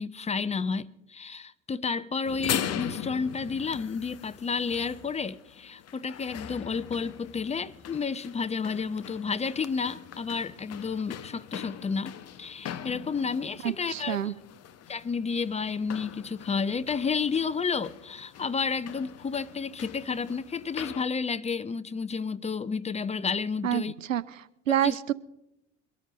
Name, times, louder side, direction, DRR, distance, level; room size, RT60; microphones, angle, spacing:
voice 1, 0.0-14.3 14.9-23.9 24.7-25.0, left 5 dB, 20° left, 0.6 m, -31 dB
sound 1, 2.2-21.0, left 10 dB, 40° left, 0.9 m, -40 dB
voice 2, 13.6-14.3 23.6-23.8 24.1-24.2 24.7-25.1, right 10 dB, 90° right, 0.5 m, -26 dB
23.5 x 13.0 x 3.0 m
figure-of-eight pair, 60°, 37 cm